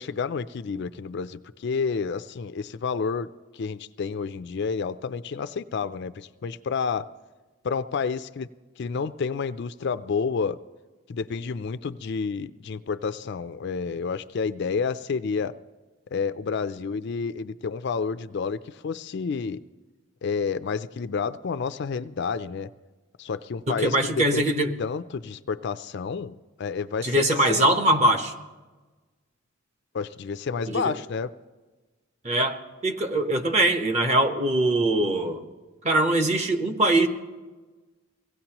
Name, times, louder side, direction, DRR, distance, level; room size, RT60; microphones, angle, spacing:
voice 1, 0.0-3.3 3.5-7.1 7.6-8.5 8.8-10.6 11.1-15.5 16.1-19.6 20.2-22.7 23.2-24.4 24.8-27.7 29.9-31.3, left 5 dB, 55° left, 12 dB, 0.4 m, -30 dB
voice 2, 23.7-24.7 27.0-28.3 30.7-30.9 32.2-35.4 35.8-37.1, right 1 dB, 35° right, 6 dB, 1.0 m, -22 dB
23.5 x 17.0 x 3.0 m, 1.3 s
head